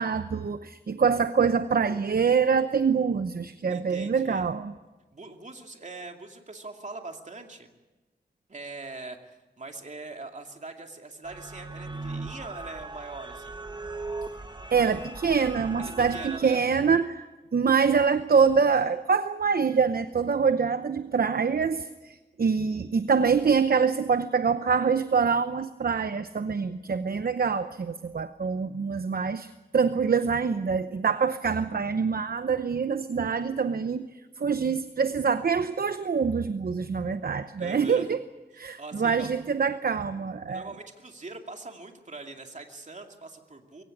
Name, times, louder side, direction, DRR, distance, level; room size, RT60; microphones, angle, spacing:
voice 1, 0.0-4.7 14.7-17.3 17.5-34.1 34.4-38.2 38.5-40.7, right 5 dB, 65° right, 10 dB, 0.8 m, -25 dB
voice 2, 3.7-4.5 5.1-7.7 8.5-13.6 15.8-16.6 37.6-38.1 38.6-39.3 40.5-43.8, right 3 dB, 45° right, 4 dB, 2.6 m, -42 dB
sound 1, 11.2-16.4, right 3 dB, 25° right, 1.6 m, -38 dB
23.0 x 16.5 x 9.9 m, 1.2 s
wide cardioid pair, 95°, 17 cm